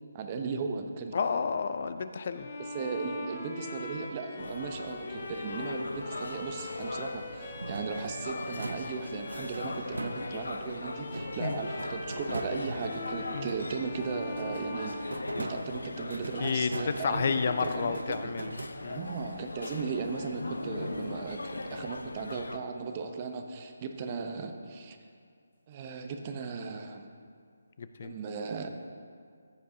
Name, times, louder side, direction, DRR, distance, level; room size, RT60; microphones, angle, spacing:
voice 1, 0.1-1.1 2.6-18.3 18.9-21.4 21.7-25.0 25.7-27.1 28.0-28.7, right 4 dB, 30° right, 5 dB, 0.7 m, -37 dB
voice 2, 1.1-2.5 11.4-11.6 13.3-13.5 16.4-19.1 27.8-28.2, left 5 dB, 50° left, 10 dB, 0.4 m, -31 dB
Bowed string instrument, 2.3-15.8, left 2 dB, 35° left, 1.6 m, -42 dB
sound 1, 4.4-22.6, left 2 dB, 80° left, 0.7 m, -40 dB
sound 2, 7.6-10.6 11.1-13.9 14.3-19.2, right 2 dB, 80° right, 0.6 m, -41 dB
14.5 x 8.5 x 2.7 m, 2.2 s
figure-of-eight pair, 155°, 0 cm